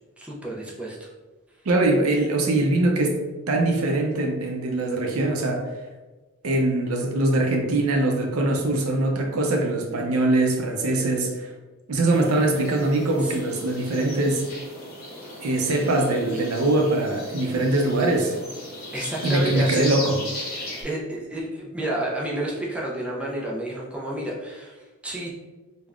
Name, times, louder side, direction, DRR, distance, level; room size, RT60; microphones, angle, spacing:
voice 1, 0.2-1.1 13.2-13.3 18.9-19.8 20.8-25.3, right 1 dB, 5° right, -4 dB, 0.4 m, -30 dB
voice 2, 1.7-3.2 3.5-5.7 6.4-11.5 11.9-14.4 15.4-18.3 19.2-20.2, right 2 dB, 90° right, 2 dB, 0.5 m, -22 dB
sound 1, 12.1-20.8, left 1 dB, 45° left, 0.9 m, -37 dB
3.4 x 2.1 x 2.4 m, 1.2 s
head